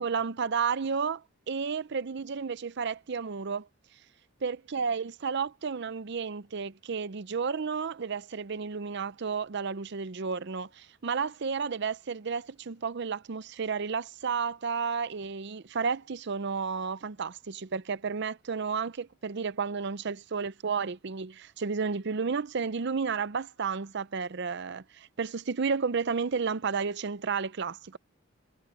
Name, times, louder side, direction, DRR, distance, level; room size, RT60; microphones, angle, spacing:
voice 1, 0.0-3.7 4.4-28.0, right 5 dB, 60° right, 0.6 m, -32 dB
head